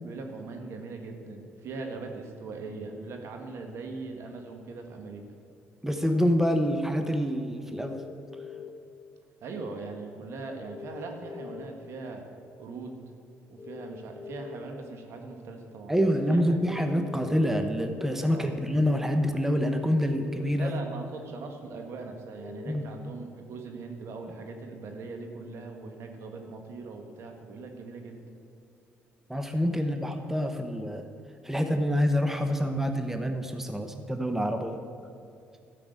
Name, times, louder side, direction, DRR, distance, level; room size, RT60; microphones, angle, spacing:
voice 1, 0.0-5.3 9.4-12.3 12.6-13.0 13.5-15.9 16.3-16.4 18.2-18.5 20.6-28.2 29.9-30.0, right 3 dB, 65° right, 4 dB, 1.7 m, -40 dB
voice 2, 5.8-8.0 15.9-20.7 22.7-22.9 29.3-31.1 31.4-34.8, equal, 5° right, 6 dB, 0.9 m, -26 dB
sound 1, 7.7-8.7 10.6-11.6 13.6-14.6 16.5-17.5 19.4-20.4 22.4-22.8, left 7 dB, 15° left, 1.6 m, -42 dB
12.0 x 5.9 x 8.2 m, 2.5 s
supercardioid pair, 75°, 5 cm